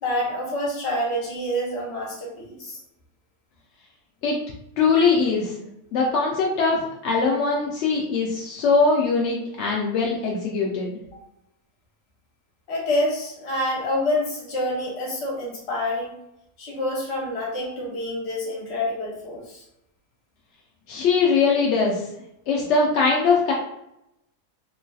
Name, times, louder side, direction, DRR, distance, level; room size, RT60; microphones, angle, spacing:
voice 1, 0.0-2.8 11.1-11.2 12.7-16.1 16.6-19.6, left 1 dB, 50° left, -3 dB, 1.1 m, -27 dB
voice 2, 4.8-10.9 20.9-22.0 22.5-23.5, left 4 dB, 65° left, -2 dB, 0.7 m, -21 dB
3.1 x 2.6 x 2.3 m, 0.81 s
omnidirectional pair, 1.6 m